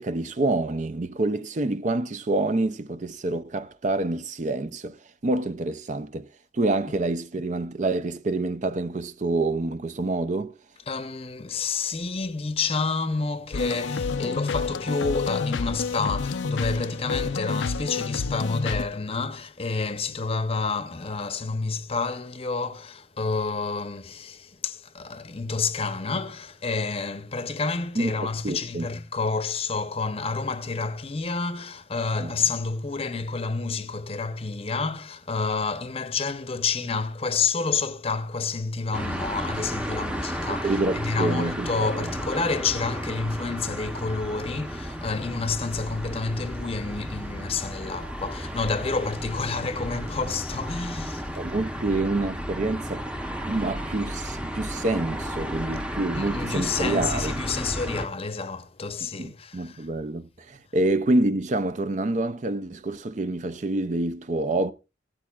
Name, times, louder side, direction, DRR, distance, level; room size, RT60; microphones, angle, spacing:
voice 1, 0.0-5.0 5.2-6.3 6.5-10.5 28.0-28.9 32.2-32.4 40.6-42.1 51.4-53.1 53.4-57.3 59.2-64.7, right 2 dB, 40° right, 0.5 m, -27 dB
voice 2, 10.9-51.3 56.1-59.9, left 4 dB, 30° left, 0.7 m, -29 dB
sound 1, 13.5-18.8, left 4 dB, 85° left, 0.5 m, -29 dB
sound 2, 38.9-58.1, equal, 5° right, 0.7 m, -33 dB
16.0 x 13.0 x 2.4 m
head